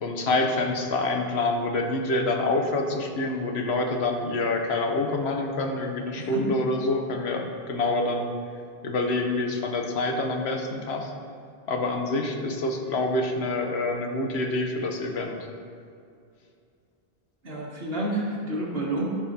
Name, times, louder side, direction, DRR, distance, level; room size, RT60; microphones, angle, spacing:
voice 1, 0.0-8.3 8.8-11.1 11.7-15.4, left 2 dB, 85° left, 3 dB, 1.1 m, -26 dB
voice 2, 6.2-6.5 17.4-19.1, right 1 dB, 75° right, -3 dB, 1.7 m, -29 dB
13.0 x 5.6 x 2.8 m, 2.4 s
omnidirectional pair, 1.0 m